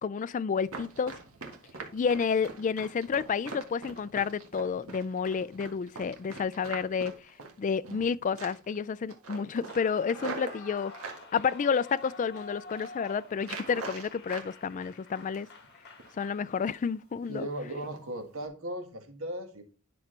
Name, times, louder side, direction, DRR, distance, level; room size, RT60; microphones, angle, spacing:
voice 1, 0.0-1.1 1.9-7.1 7.6-10.9 11.3-15.5 16.2-17.5, left 6 dB, 35° left, 0.3 m, -30 dB
Run, 0.6-8.1 8.4-8.8 9.1-11.2 11.8-12.4 12.6-12.9 13.4-14.5 14.8-15.7 16.0-16.2 16.6-16.9 17.2-17.4 17.8-18.0 18.4-18.5, right 4 dB, 90° right, 1.7 m, -43 dB
Clapping / Cheering / Applause, 9.6-17.0, left 2 dB, 55° left, 1.8 m, -48 dB
voice 2, 17.3-19.6, right 1 dB, 70° right, 1.8 m, -37 dB
10.0 x 6.1 x 3.3 m
head